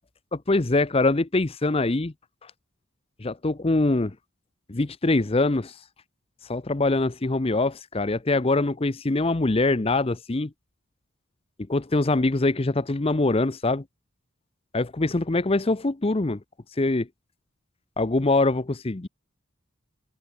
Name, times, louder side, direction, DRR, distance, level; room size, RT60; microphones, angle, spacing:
voice 1, 0.3-2.1 3.2-4.1 4.7-5.7 6.5-10.5 11.7-13.8 14.7-16.4 16.8-17.1 18.0-19.1, left 2 dB, 25° left, 0.6 m, -23 dB
head